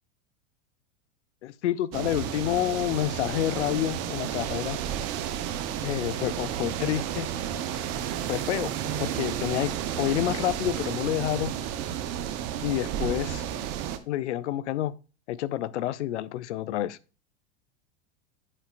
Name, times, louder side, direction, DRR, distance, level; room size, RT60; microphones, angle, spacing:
voice 1, 1.4-4.8 5.8-7.3 8.3-11.5 12.6-13.4 14.1-14.9 15.3-17.0, left 13 dB, 80° left, 0.6 m, -29 dB
sound 1, 1.9-14.0, right 10 dB, 45° right, 0.9 m, -32 dB
8.6 x 5.6 x 2.5 m
hypercardioid pair, 105°, 35 cm